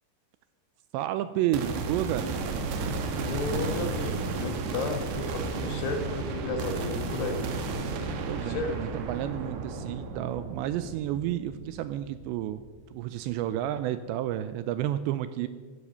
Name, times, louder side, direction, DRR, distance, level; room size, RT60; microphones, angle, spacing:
voice 1, 0.9-2.3 8.3-12.6 12.9-15.5, right 12 dB, 85° right, 13 dB, 2.6 m, -31 dB
sound 1, 1.5-12.9, right 3 dB, 65° right, 3.0 m, -33 dB
voice 2, 3.2-7.4 8.3-8.7, left 3 dB, 70° left, 6 dB, 3.2 m, -33 dB
15.0 x 12.0 x 6.8 m, 1.5 s
omnidirectional pair, 5.5 m